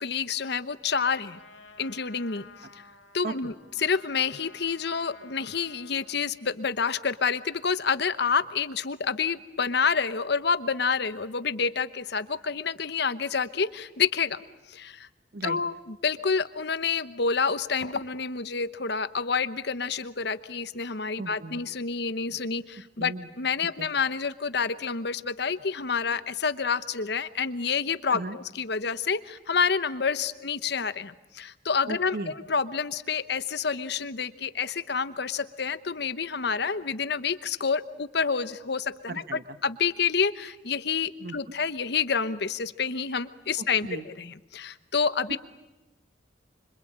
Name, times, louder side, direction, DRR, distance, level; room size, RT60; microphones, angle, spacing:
voice 1, 0.0-1.4 1.8-2.5 3.1-14.4 14.7-15.1 15.4-45.4, left 5 dB, 60° left, 14 dB, 1.0 m, -28 dB
Trumpet, 1.3-6.3, left 3 dB, 85° left, 2.3 m, -52 dB
voice 2, 21.2-21.6 23.0-23.3 23.8-23.9 28.1-28.4 31.9-32.3 39.1-39.4 41.2-41.4 43.6-44.0 45.3-45.4, right 3 dB, 55° right, 13 dB, 1.0 m, -36 dB
26.0 x 25.5 x 8.7 m, 1.1 s
head